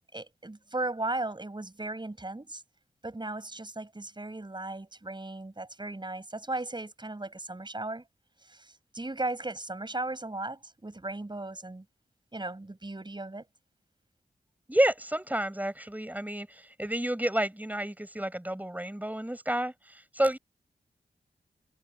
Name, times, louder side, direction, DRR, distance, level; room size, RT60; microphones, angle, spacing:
voice 1, 0.1-2.6 3.0-8.0 8.5-11.8 12.3-13.4, right 2 dB, 30° right, 6.7 m, -36 dB
voice 2, 14.7-20.4, right 1 dB, 10° right, 7.6 m, -30 dB
cardioid pair, 45°, 16 cm